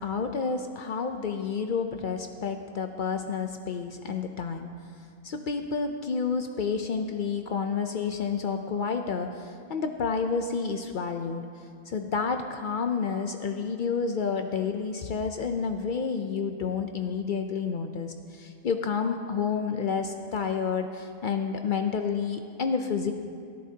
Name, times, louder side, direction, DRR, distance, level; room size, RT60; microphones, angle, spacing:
voice 1, 0.0-4.7 5.2-11.5 11.9-23.1, left 5 dB, 85° left, 6 dB, 0.4 m, -30 dB
18.5 x 13.5 x 2.8 m, 2.3 s
omnidirectional pair, 1.6 m